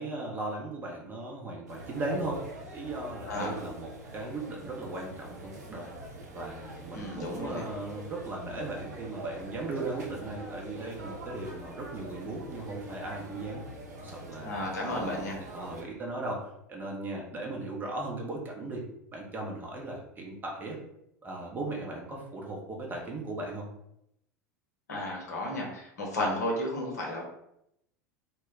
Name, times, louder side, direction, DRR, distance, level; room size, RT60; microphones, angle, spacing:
voice 1, 0.0-2.4 2.7-5.9 6.3-13.6 14.0-14.5 14.8-15.3 15.5-18.8 19.1-20.8 21.2-23.7, right 2 dB, 20° right, -1 dB, 0.7 m, -37 dB
sound 1, 1.7-15.8, right 1 dB, 65° right, 0.7 m, -44 dB
voice 2, 3.2-3.6 6.9-7.7 14.4-15.4 24.9-27.2, left 1 dB, 70° left, -1 dB, 0.8 m, -33 dB
2.2 x 2.1 x 3.7 m, 0.78 s
figure-of-eight pair, 80°, 9 cm